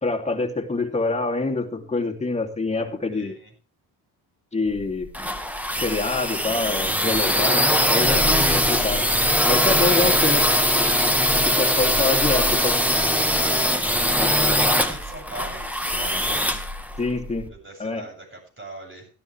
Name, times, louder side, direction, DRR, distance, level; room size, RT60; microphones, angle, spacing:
voice 1, 0.0-3.4 4.5-5.1 5.8-8.3 8.5-9.0 9.4-10.4 11.4-12.8 14.2-14.3 17.0-17.5 17.8-18.1, left 3 dB, 15° left, 1 dB, 2.9 m, -26 dB
voice 2, 3.1-3.5 11.8-12.1 13.4-16.4 17.5-19.1, right 2 dB, 30° right, 2 dB, 7.9 m, -41 dB
sound 1, 4.7-17.5, equal, 5° right, 1.8 m, -21 dB
16.0 x 12.5 x 3.4 m, 0.36 s
cardioid pair, 95°, 39 cm